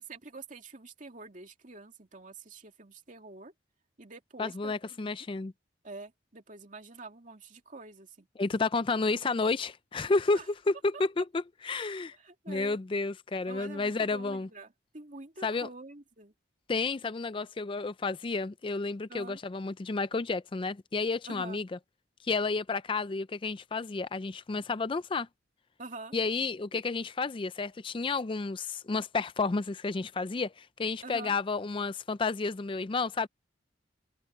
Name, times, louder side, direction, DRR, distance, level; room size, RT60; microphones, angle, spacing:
voice 1, 0.0-3.5 4.0-5.1 5.8-8.3 10.3-10.5 10.9-11.0 12.1-12.8 13.4-16.3 19.1-19.4 21.3-21.6 25.8-26.1 31.0-31.3, right 3 dB, 45° right, 2.6 m, -46 dB
voice 2, 4.4-5.5 8.4-10.4 10.7-12.2 12.5-14.5 15.4-15.7 16.7-21.7 22.2-25.3 26.1-33.3, left 3 dB, 30° left, 0.4 m, -31 dB
head